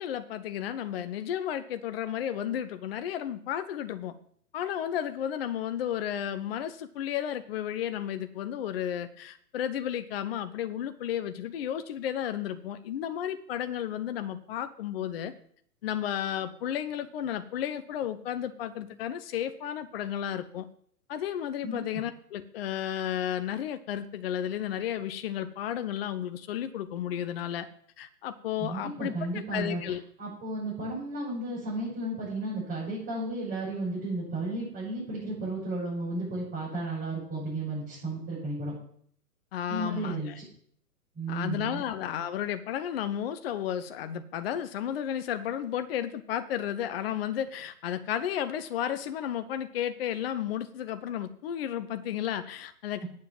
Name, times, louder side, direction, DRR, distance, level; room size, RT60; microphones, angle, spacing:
voice 1, 0.0-4.2 4.5-15.3 15.8-20.7 21.1-27.7 28.0-29.1 29.5-30.0 39.5-40.4 41.3-53.0, left 10 dB, 40° left, 11 dB, 0.7 m, -33 dB
voice 2, 21.6-22.0 28.6-29.8 30.2-38.7 39.7-40.5 41.1-41.8 53.0-53.1, right 2 dB, 20° right, -8 dB, 6.2 m, -33 dB
8.9 x 7.5 x 7.5 m, 0.62 s
hypercardioid pair, 130°, 46 cm